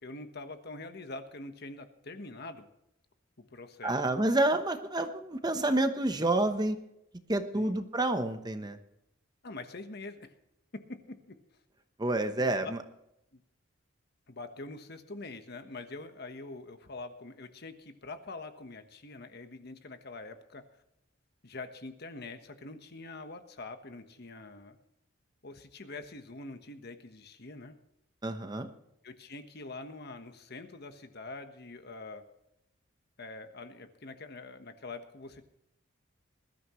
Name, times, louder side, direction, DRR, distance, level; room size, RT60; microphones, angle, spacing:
voice 1, 0.0-2.7 3.4-3.9 7.5-7.7 9.4-10.3 10.7-11.4 12.5-12.7 13.3-13.4 14.3-20.6 21.4-24.8 25.4-27.7 29.0-32.3 33.2-35.5, left 3 dB, 55° left, 8 dB, 1.3 m, -44 dB
voice 2, 3.8-6.8 7.3-8.8 12.0-12.8 28.2-28.7, right 2 dB, 20° right, 8 dB, 1.0 m, -28 dB
21.0 x 13.0 x 3.1 m, 0.82 s
head